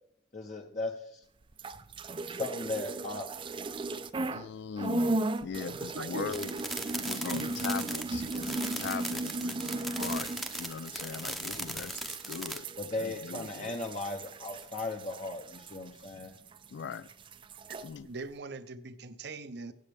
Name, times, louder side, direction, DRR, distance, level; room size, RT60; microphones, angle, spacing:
voice 1, 0.3-1.2 2.3-3.3 11.7-11.8 12.8-16.3, left 2 dB, 40° left, 2 dB, 0.8 m, -37 dB
sound 1, 1.5-4.5 4.8-16.7 16.9-17.9, right 2 dB, 25° right, 0.4 m, -36 dB
voice 2, 4.3-6.5 7.0-10.3 10.6-12.7 13.0-13.7 16.7-17.1 17.8-18.1, left 6 dB, 65° left, 15 dB, 0.3 m, -40 dB
voice 3, 5.7-6.3 7.2-7.5 8.2-8.3 17.7-19.7, right 3 dB, 60° right, 12 dB, 0.7 m, -42 dB
sound 2, 6.3-12.6, equal, ahead, 0.7 m, -38 dB
15.5 x 8.4 x 3.5 m, 0.71 s
head